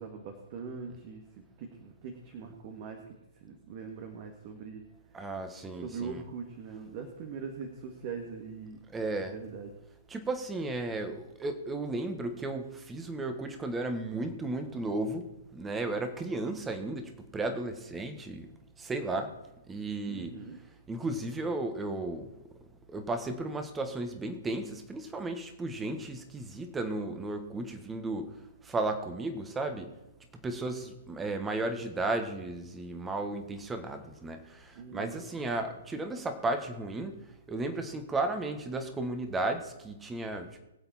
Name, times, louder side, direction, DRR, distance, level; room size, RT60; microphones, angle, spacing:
voice 1, 0.0-4.8 5.8-8.8 9.2-9.7 20.1-20.6 34.7-35.3, right 5 dB, 40° right, 4 dB, 1.9 m, -42 dB
voice 2, 5.1-6.2 8.9-9.3 10.1-15.2 15.5-18.5 18.8-19.3 19.7-20.4 20.9-22.3 22.9-28.3 28.6-29.9 30.4-37.2 37.5-40.5, right 2 dB, 10° right, 7 dB, 1.7 m, -34 dB
23.0 x 7.8 x 4.4 m, 0.92 s
figure-of-eight pair, 120°, 0 cm